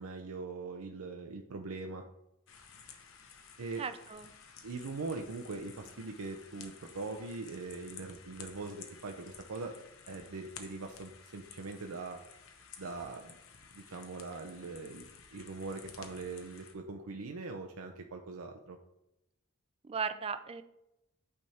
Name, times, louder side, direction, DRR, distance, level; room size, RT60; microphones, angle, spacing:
voice 1, 0.0-2.0 3.6-3.8 4.6-12.2 12.8-13.4 13.7-18.8, right 3 dB, 90° right, 4 dB, 0.6 m, -42 dB
sound 1, 2.5-16.7, left 6 dB, 70° left, 0.8 m, -54 dB
voice 2, 3.8-4.3 19.8-20.6, right 5 dB, 25° right, 11 dB, 0.4 m, -37 dB
9.2 x 3.5 x 4.2 m, 0.86 s
head